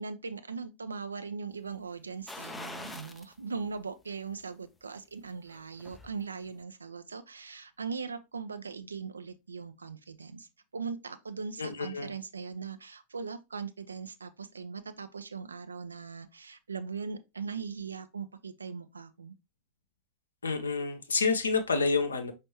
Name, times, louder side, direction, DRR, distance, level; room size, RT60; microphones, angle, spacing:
voice 1, 0.0-10.5 10.7-19.3, right 5 dB, 75° right, 0.4 m, -40 dB
sound 1, 2.3-3.3 3.8-3.9 5.4-6.2 6.5-6.6, left 2 dB, 10° left, 0.4 m, -43 dB
voice 2, 11.6-12.1 20.4-22.3, left 4 dB, 75° left, 0.7 m, -28 dB
5.2 x 3.2 x 2.8 m
figure-of-eight pair, 90°, 0 cm